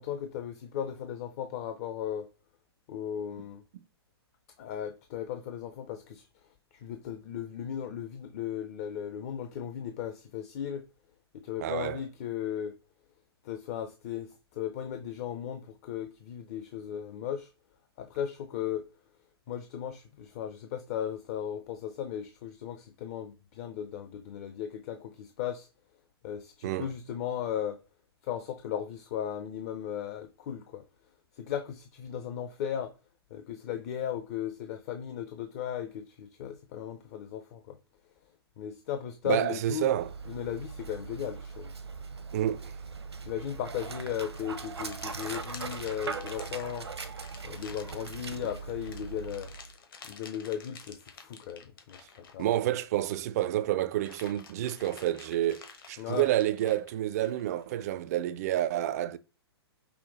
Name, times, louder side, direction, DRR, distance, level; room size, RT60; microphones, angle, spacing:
voice 1, 0.0-2.3 2.9-3.6 4.6-6.2 6.8-10.8 11.3-12.7 13.4-17.5 18.0-18.8 19.5-25.7 26.2-27.8 28.2-30.8 31.3-32.9 33.3-37.8 38.6-39.9 40.3-41.7 43.2-46.9 47.4-49.5 50.1-52.1 52.3-52.5 56.0-56.3, left 9 dB, 35° left, 0.5 m, -36 dB
voice 2, 11.6-12.0 26.6-26.9 39.3-40.1 42.3-42.7 52.4-59.2, right 13 dB, 40° right, 0.4 m, -29 dB
Dog, 39.8-49.7, right 5 dB, 75° right, 0.7 m, -40 dB
sound 1, 44.2-53.3 53.7-57.9, left 6 dB, 55° left, 1.1 m, -50 dB
5.7 x 2.1 x 3.8 m
figure-of-eight pair, 115°, 14 cm